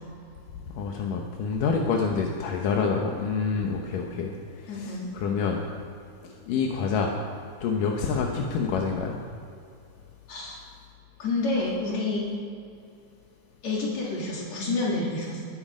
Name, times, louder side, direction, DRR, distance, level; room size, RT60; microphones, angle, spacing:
voice 1, 0.8-4.3 4.6-5.6 6.5-7.1 7.6-9.2, left 5 dB, 85° left, 1 dB, 2.8 m, -27 dB
voice 2, 4.7-5.0 10.3-10.6 11.2-12.3 13.6-15.4, left 2 dB, 55° left, -5 dB, 4.7 m, -28 dB
20.5 x 12.0 x 5.1 m, 2.5 s
omnidirectional pair, 3.8 m